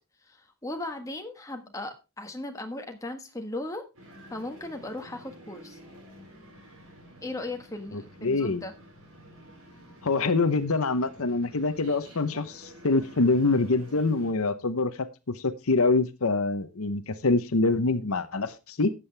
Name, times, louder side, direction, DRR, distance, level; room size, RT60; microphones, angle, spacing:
voice 1, 0.3-3.8 4.3-5.8 7.2-8.7, left 2 dB, 15° left, 4 dB, 1.5 m, -37 dB
sound 1, 3.9-14.3, right 1 dB, 65° right, 5.5 m, -50 dB
voice 2, 7.9-8.7 10.0-18.9, left 3 dB, 75° left, 12 dB, 0.9 m, -25 dB
13.0 x 8.6 x 3.4 m, 0.27 s
head